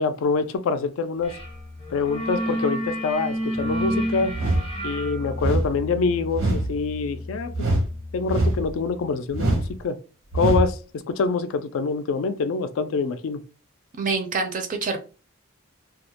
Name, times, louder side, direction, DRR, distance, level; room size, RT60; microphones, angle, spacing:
voice 1, 0.0-1.4 1.9-4.3 4.8-7.7 8.1-10.0 10.3-13.4, left 4 dB, 75° left, 0.3 m, -25 dB
sound 1, 1.3-1.5 1.8-8.4, equal, 25° left, 0.5 m, -30 dB
sound 2, 4.3-4.7 5.4-5.7 6.3-6.7 7.5-7.9 8.3-8.7 9.3-9.7 10.3-10.7, right 1 dB, 70° right, 0.7 m, -23 dB
voice 2, 14.0-15.0, right 4 dB, 40° right, 0.4 m, -26 dB
2.3 x 2.0 x 2.8 m
head